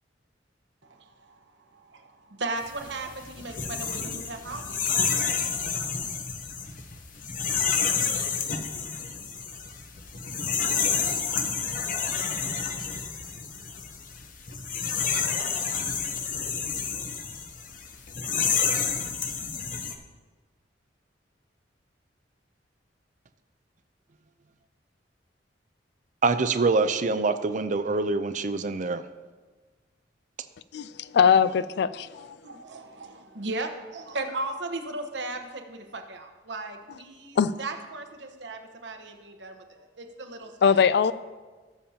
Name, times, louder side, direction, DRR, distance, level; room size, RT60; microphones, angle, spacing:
voice 1, 0.8-4.9 5.3-5.5 32.4-40.8, right 2 dB, 70° right, 5 dB, 1.1 m, -37 dB
sound 1, 2.7-19.9, left 6 dB, 45° left, 0.9 m, -29 dB
voice 2, 26.2-29.0, right 3 dB, 45° right, 10 dB, 0.5 m, -25 dB
voice 3, 30.7-32.4 37.4-37.5 40.6-41.1, left 7 dB, 65° left, 16 dB, 0.4 m, -21 dB
18.0 x 7.1 x 2.9 m, 1.3 s
head